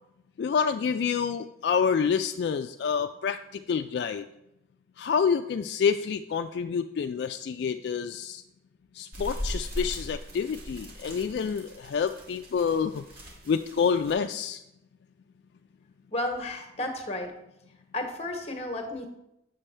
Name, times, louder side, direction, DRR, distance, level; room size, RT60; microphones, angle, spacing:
voice 1, 0.4-4.2 5.0-8.4 8.9-13.0 13.5-14.6, left 6 dB, 70° left, 8 dB, 0.3 m, -28 dB
sound 1, 9.1-14.1, equal, 55° right, 1.9 m, -39 dB
voice 2, 16.1-17.3 17.9-19.1, left 1 dB, 35° left, 4 dB, 1.1 m, -32 dB
7.5 x 7.1 x 3.3 m, 0.83 s
head